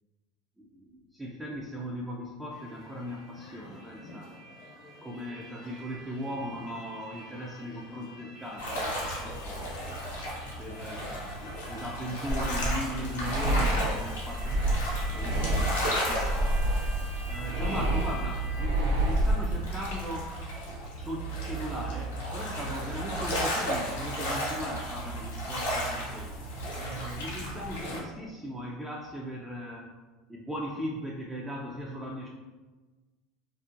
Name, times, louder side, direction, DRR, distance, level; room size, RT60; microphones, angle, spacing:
voice 1, 0.6-4.3 5.0-8.9 9.2-9.7 10.6-11.2 11.7-16.6 17.3-20.3 20.9-26.3 26.7-29.9 30.3-32.3, equal, 10° right, -3 dB, 0.4 m, -38 dB
sound 1, 2.5-18.7, equal, 55° left, 0.7 m, -47 dB
sound 2, 8.6-28.0, equal, 85° left, 0.7 m, -34 dB
sound 3, 12.3-19.9, right 1 dB, 80° right, 0.4 m, -28 dB
2.5 x 2.0 x 2.5 m, 1.3 s
hypercardioid pair, 90°, 0 cm